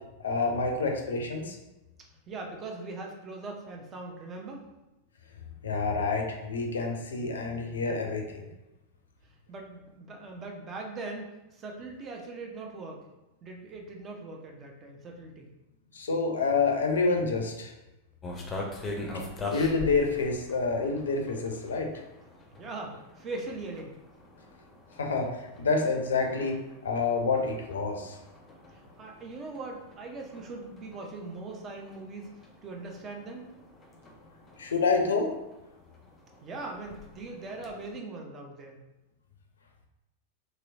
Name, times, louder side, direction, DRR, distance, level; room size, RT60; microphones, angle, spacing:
voice 1, 0.2-1.6 5.6-8.5 15.9-17.7 19.5-21.9 25.0-26.6 26.8-28.2 34.6-35.3, left 4 dB, 65° left, 2 dB, 0.5 m, -28 dB
voice 2, 2.3-4.6 9.5-13.0 13.4-15.5 22.6-24.0 28.7-32.3 32.6-33.5 36.4-38.8, right 3 dB, 25° right, 1 dB, 0.6 m, -40 dB
sound 1, 18.2-38.0, left 3 dB, 20° left, 0.6 m, -44 dB
3.0 x 2.9 x 2.7 m, 0.98 s
figure-of-eight pair, 90°, 0 cm